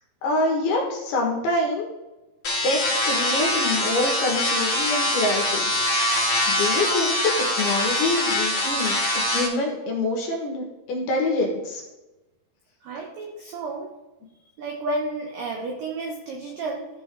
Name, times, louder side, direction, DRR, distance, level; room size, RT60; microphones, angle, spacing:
voice 1, 0.2-1.9 2.6-5.8 6.5-7.2 7.6-11.8, left 2 dB, 65° left, 0 dB, 3.2 m, -26 dB
sound 1, 2.4-9.5, left 1 dB, 40° left, 3.0 m, -23 dB
voice 2, 12.8-13.9 14.6-16.9, right 2 dB, 90° right, 1 dB, 1.9 m, -31 dB
14.0 x 5.4 x 3.6 m, 1.0 s
omnidirectional pair, 5.5 m